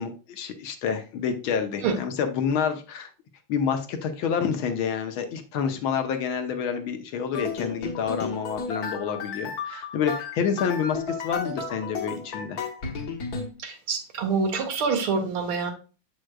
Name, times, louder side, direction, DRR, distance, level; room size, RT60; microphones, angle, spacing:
voice 1, 0.0-3.1 3.5-12.6, left 7 dB, 75° left, 6 dB, 1.6 m, -28 dB
sound 1, 7.3-13.5, left 5 dB, 50° left, 1.4 m, -33 dB
voice 2, 13.6-15.7, right 5 dB, 75° right, 5 dB, 2.0 m, -26 dB
7.5 x 6.3 x 2.2 m, 0.35 s
omnidirectional pair, 2.4 m